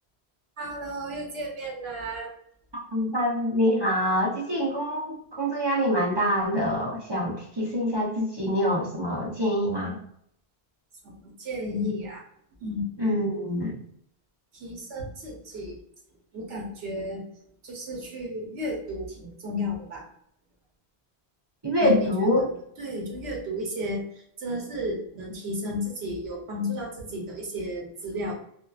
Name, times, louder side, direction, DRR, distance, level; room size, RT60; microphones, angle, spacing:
voice 1, 0.6-2.3 11.0-11.1 11.4-12.2 12.6-12.9 14.5-15.8 16.3-17.2 17.6-20.1 21.8-22.5 22.8-24.0 24.4-28.3, left 1 dB, 80° right, -1 dB, 1.0 m, -33 dB
voice 2, 2.9-10.0 13.0-13.7 21.6-22.5, equal, 35° right, -4 dB, 0.5 m, -25 dB
2.6 x 2.2 x 2.3 m, 0.68 s
omnidirectional pair, 1.1 m